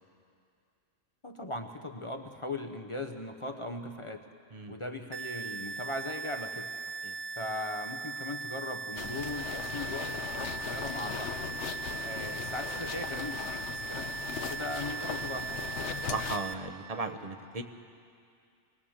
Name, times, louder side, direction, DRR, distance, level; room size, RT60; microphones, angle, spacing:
voice 1, 1.2-4.3 4.7-6.7 7.4-11.3 12.0-15.7, left 2 dB, 30° left, 3 dB, 0.8 m, -39 dB
sound 1, 5.1-16.5, right 4 dB, 60° right, 1.0 m, -39 dB
sound 2, 9.0-16.4, left 7 dB, 80° left, 1.1 m, -39 dB
voice 2, 16.1-17.6, right 3 dB, 35° right, 6 dB, 1.1 m, -36 dB
23.0 x 17.5 x 7.3 m, 2.4 s
omnidirectional pair, 1.2 m